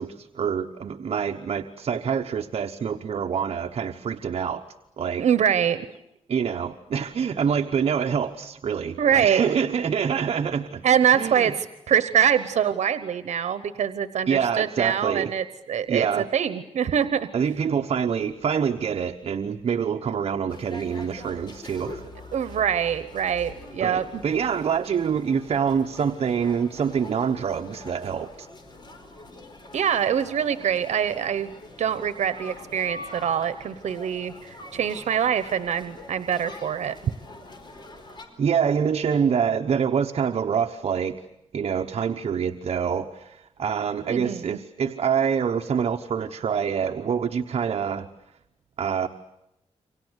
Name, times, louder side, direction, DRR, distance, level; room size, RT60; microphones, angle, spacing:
voice 1, 0.0-4.7 5.0-5.3 6.3-10.8 11.1-11.5 14.3-15.3 15.9-16.3 17.3-22.1 22.4-22.5 23.8-28.5 38.4-41.2 41.5-48.1 48.8-49.1, right 7 dB, 60° right, 5 dB, 1.1 m, -26 dB
voice 2, 5.2-5.9 9.0-9.4 10.8-17.3 22.3-24.2 29.7-36.9 44.1-44.6, right 8 dB, 85° right, 12 dB, 1.0 m, -24 dB
sound 1, 20.5-38.2, left 2 dB, 40° left, 4.7 m, -44 dB
28.5 x 25.0 x 8.2 m, 0.89 s
wide cardioid pair, 150°, 12 cm